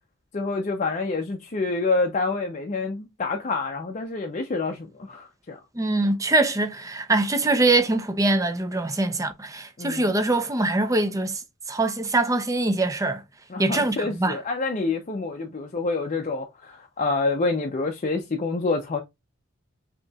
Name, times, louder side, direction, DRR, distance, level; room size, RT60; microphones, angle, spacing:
voice 1, 0.3-5.6 9.8-10.1 13.5-19.0, left 3 dB, 40° left, 0.6 m, -27 dB
voice 2, 5.8-11.4 11.7-13.2 13.6-14.4, right 2 dB, 15° right, 0.5 m, -23 dB
5.2 x 2.9 x 2.3 m
head